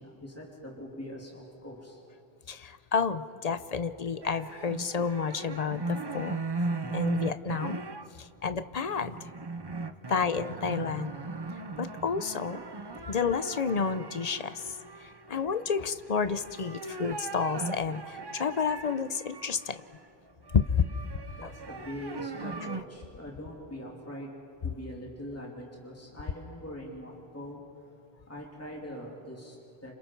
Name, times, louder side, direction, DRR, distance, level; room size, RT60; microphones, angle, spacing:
voice 1, 0.0-2.0 21.3-27.6 28.3-29.9, equal, 15° left, -2 dB, 3.0 m, -43 dB
voice 2, 2.5-6.4 6.9-7.8 8.2-9.2 10.1-11.1 11.8-12.6 13.1-14.6 15.3-19.8 20.8-20.9 21.4-21.5, left 6 dB, 45° left, 12 dB, 0.7 m, -30 dB
sound 1, 4.2-8.1 8.6-20.0 20.5-22.8, right 3 dB, 25° right, 0.7 m, -38 dB
29.5 x 27.5 x 4.6 m, 2.6 s
omnidirectional pair, 1.1 m